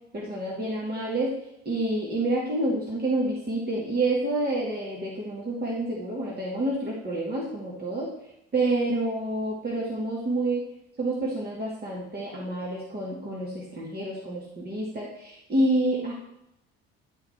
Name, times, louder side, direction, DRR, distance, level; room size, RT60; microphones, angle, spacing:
voice 1, 0.1-1.4 1.6-8.1 8.5-10.6 11.0-16.1, right 2 dB, 30° right, -4 dB, 2.5 m, -28 dB
10.5 x 5.6 x 4.6 m, 0.83 s
figure-of-eight pair, 50°, 32 cm